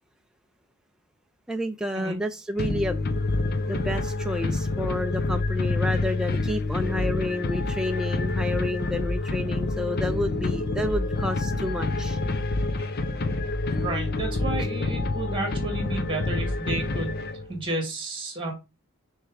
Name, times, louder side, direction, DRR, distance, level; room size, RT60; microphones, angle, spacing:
voice 1, 1.5-3.0 3.7-12.2, left 1 dB, 5° right, 0.4 m, -30 dB
sound 1, 2.6-17.6, left 2 dB, 45° left, 0.7 m, -27 dB
voice 2, 13.8-18.5, right 2 dB, 25° right, 2.1 m, -32 dB
6.6 x 3.6 x 4.7 m
head